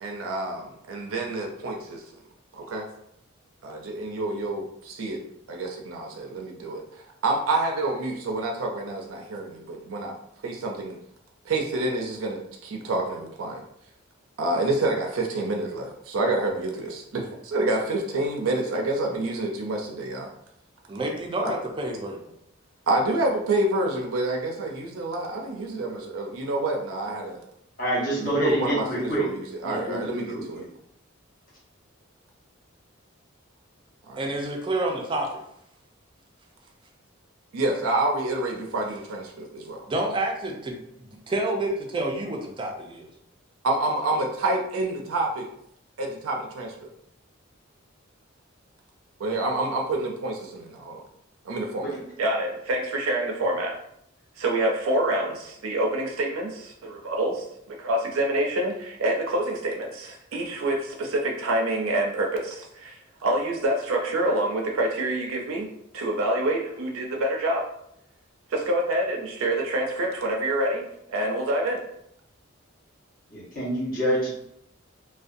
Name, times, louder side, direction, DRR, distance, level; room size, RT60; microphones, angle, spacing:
voice 1, 0.0-2.0 2.6-2.9 3.6-5.2 5.5-6.8 7.2-10.1 10.4-11.0 11.5-13.6 14.4-20.3 21.4-21.5 22.9-27.4 28.2-30.6 34.1-34.2 37.5-39.8 43.6-45.5 46.0-46.9 49.2-51.0 51.5-53.8 54.4-67.7 68.5-71.8, right 2 dB, 90° right, 1 dB, 0.4 m, -27 dB
voice 2, 20.9-22.3 34.2-35.4 39.9-43.1, right 2 dB, 25° right, 1 dB, 0.4 m, -29 dB
voice 3, 27.8-29.3 29.6-30.7 51.8-52.0 73.3-74.3, right 1 dB, 45° left, -7 dB, 1.1 m, -27 dB
2.5 x 2.2 x 2.5 m, 0.75 s
head